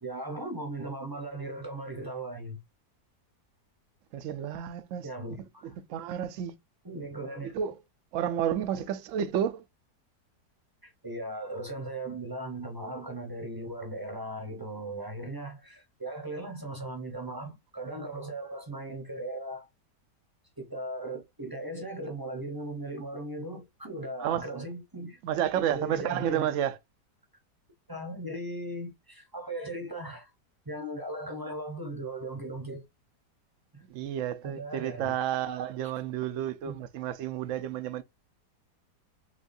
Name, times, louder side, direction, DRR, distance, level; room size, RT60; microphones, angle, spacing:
voice 1, 0.0-2.6 5.0-5.8 6.8-7.5 8.8-8.9 10.8-19.7 20.6-25.2 25.5-26.5 27.9-30.3 30.6-32.8 33.7-33.8 34.4-35.2 36.6-36.8, right 1 dB, 20° right, 0.5 m, -38 dB
voice 2, 4.1-5.1 5.4-5.5 5.9-6.6 7.4-7.8 8.1-9.6 24.2-24.5 25.2-26.8 33.9-38.0, right 10 dB, 65° right, 0.8 m, -31 dB
6.1 x 2.4 x 2.6 m
omnidirectional pair, 1.8 m